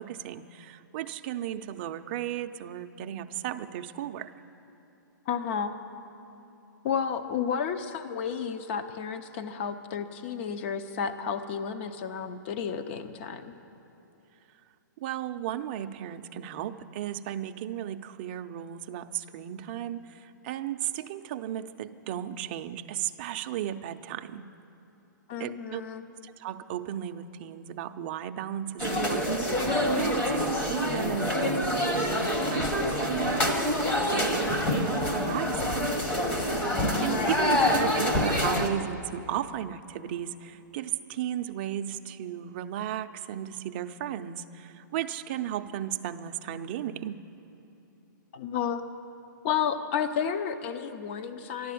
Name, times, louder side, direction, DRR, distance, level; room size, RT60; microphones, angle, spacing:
voice 1, 0.0-4.3 15.0-24.5 25.4-25.8 26.2-33.7 34.0-35.9 37.0-47.2, right 11 dB, 30° right, 8 dB, 0.5 m, -35 dB
voice 2, 5.3-5.8 6.8-13.5 25.3-26.0 37.0-37.4 48.3-48.8 49.4-51.7, left 7 dB, 35° left, 10 dB, 0.7 m, -32 dB
sound 1, 28.8-38.7, left 1 dB, 15° left, 1.0 m, -26 dB
13.0 x 11.5 x 8.4 m, 2.8 s
hypercardioid pair, 160°, 11 cm